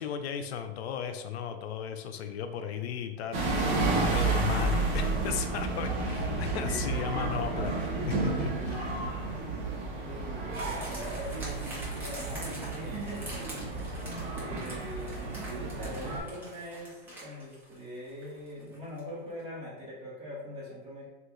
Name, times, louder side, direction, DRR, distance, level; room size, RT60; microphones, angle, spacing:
voice 1, 0.0-3.7 4.1-8.9, left 8 dB, 85° left, 7 dB, 0.5 m, -36 dB
sound 1, 3.3-16.2, right 3 dB, 50° right, 0.8 m, -31 dB
voice 2, 6.5-7.0 10.0-14.0 14.3-21.1, equal, 20° right, -7 dB, 1.1 m, -42 dB
sound 2, 10.5-19.1 19.4-19.5, right 1 dB, 5° right, 0.5 m, -45 dB
2.8 x 2.4 x 3.6 m, 1.1 s
supercardioid pair, 165°, 31 cm